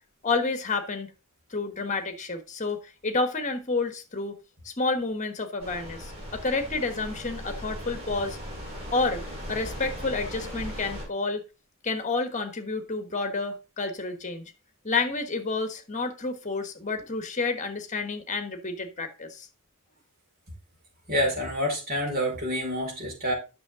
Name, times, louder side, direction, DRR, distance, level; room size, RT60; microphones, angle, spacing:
voice 1, 0.2-1.1 1.5-4.4 4.6-8.4 8.9-9.2 9.5-11.4 11.8-14.4 14.8-19.5, left 3 dB, 35° left, 1.4 m, -29 dB
sound 1, 5.6-11.1, equal, 30° right, 5.6 m, -38 dB
voice 2, 21.1-23.3, equal, 45° right, 5.2 m, -27 dB
9.6 x 6.4 x 3.7 m
head